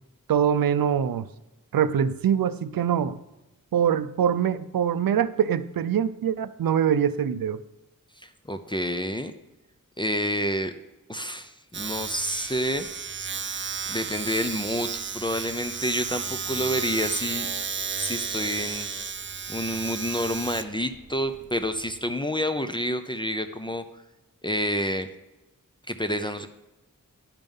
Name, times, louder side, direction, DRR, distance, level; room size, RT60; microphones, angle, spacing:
voice 1, 0.3-1.3 1.7-3.2 3.7-7.6, right 8 dB, 85° right, 14 dB, 0.5 m, -23 dB
voice 2, 8.2-9.3 10.0-10.7 11.1-12.9 13.9-17.5 18.0-18.9 19.5-23.8 24.4-25.1 25.9-26.5, equal, 15° left, 9 dB, 0.6 m, -28 dB
Domestic sounds home sounds, 11.7-22.1, right 6 dB, 35° right, 0.4 m, -33 dB
10.5 x 5.3 x 5.4 m, 1.0 s
wide cardioid pair, 60°, 34 cm